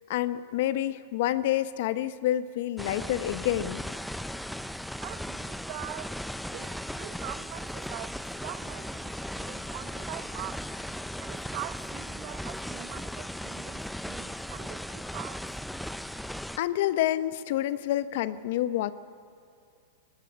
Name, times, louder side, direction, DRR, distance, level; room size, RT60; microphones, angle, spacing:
voice 1, 0.1-3.8 16.6-18.9, left 13 dB, 60° left, 14 dB, 0.9 m, -28 dB
sound 1, 2.8-16.6, equal, ahead, 0.4 m, -37 dB
voice 2, 5.0-10.7 11.2-15.4, right 16 dB, 50° right, 12 dB, 1.1 m, -43 dB
18.5 x 18.5 x 9.6 m, 2.4 s
hypercardioid pair, 120°, 0 cm